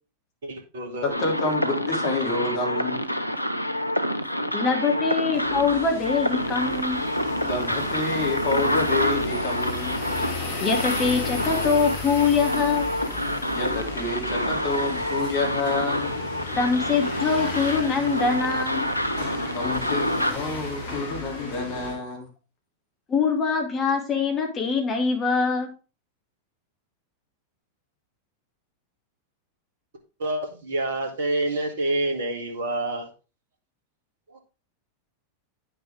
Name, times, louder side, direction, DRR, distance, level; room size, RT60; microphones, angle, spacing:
voice 1, 0.4-1.3 30.2-33.1 34.3-34.4, right 2 dB, 60° right, 3 dB, 1.7 m, -28 dB
voice 2, 1.0-3.0 7.4-10.0 13.5-16.1 19.5-22.3, left 3 dB, 40° left, 0 dB, 3.0 m, -28 dB
sound 1, 1.1-20.3, left 1 dB, 90° left, 0.7 m, -27 dB
voice 3, 4.5-7.0 10.6-12.9 16.6-18.9 23.1-25.7, left 5 dB, 25° left, 2 dB, 2.6 m, -23 dB
sound 2, 5.3-21.9, left 3 dB, 55° left, 3.3 m, -35 dB
9.7 x 6.6 x 3.6 m, 0.32 s
figure-of-eight pair, 90°, 0 cm